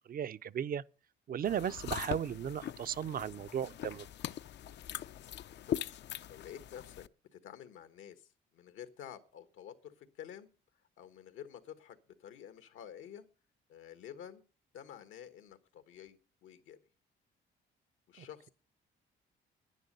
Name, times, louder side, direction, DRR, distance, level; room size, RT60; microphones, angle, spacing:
voice 1, 0.1-0.8 1.3-4.1 18.2-18.3, right 9 dB, 50° right, 0.5 m, -36 dB
sound 1, 1.4-7.1, left 10 dB, 60° left, 0.5 m, -41 dB
voice 2, 5.3-6.0 6.3-7.0 7.3-10.5 11.0-13.2 13.7-14.4 14.7-16.8 18.1-18.5, left 9 dB, 85° left, 1.4 m, -50 dB
10.5 x 10.0 x 6.7 m
cardioid pair, 90°, 20 cm